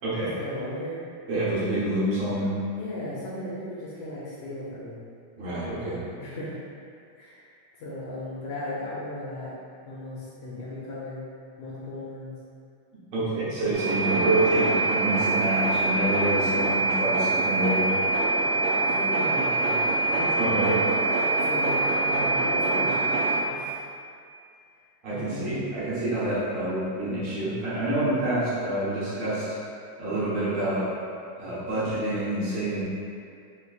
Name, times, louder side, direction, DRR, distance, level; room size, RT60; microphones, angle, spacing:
voice 1, 0.2-1.1 2.8-5.0 6.2-6.6 7.2-9.5 9.9-11.2 11.6-12.3 18.5-20.3 21.0-23.2 23.5-23.8 25.1-25.7, left 1 dB, 80° left, -7 dB, 1.9 m, -36 dB
voice 2, 1.3-2.5 5.4-6.0 13.1-17.9 20.3-20.8 25.0-29.4 30.0-30.9 31.4-32.8, right 1 dB, 60° right, -11 dB, 2.1 m, -27 dB
sound 1, 13.7-23.4, right 2 dB, 75° right, 2.1 m, -24 dB
5.8 x 2.9 x 2.4 m, 2.4 s
omnidirectional pair, 3.6 m